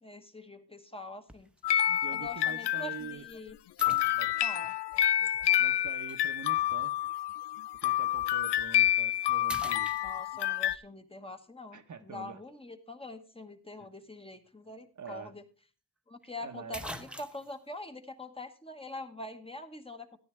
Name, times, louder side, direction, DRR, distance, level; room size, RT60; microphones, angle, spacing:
voice 1, 0.0-1.5 1.8-3.6 4.4-4.7 10.0-15.4 16.1-20.2, left 2 dB, 15° left, 1.1 m, -44 dB
sound 1, 1.3-1.6 2.3-2.4 3.8-4.6 6.1-6.2 8.4-8.6 9.0-9.2 9.5-10.6 14.7-14.8 15.1-15.2 16.2-16.3 16.7-17.6, equal, 5° right, 0.8 m, -43 dB
sound 2, 1.6-3.3 3.8-10.8, left 12 dB, 90° left, 0.5 m, -28 dB
voice 2, 2.0-3.3 4.2-4.3 4.6-4.7 5.6-6.9 7.8-9.9 11.7-12.4 15.0-15.3 16.4-16.8, right 6 dB, 45° right, 1.0 m, -45 dB
13.5 x 11.0 x 3.1 m
wide cardioid pair, 110°, 40 cm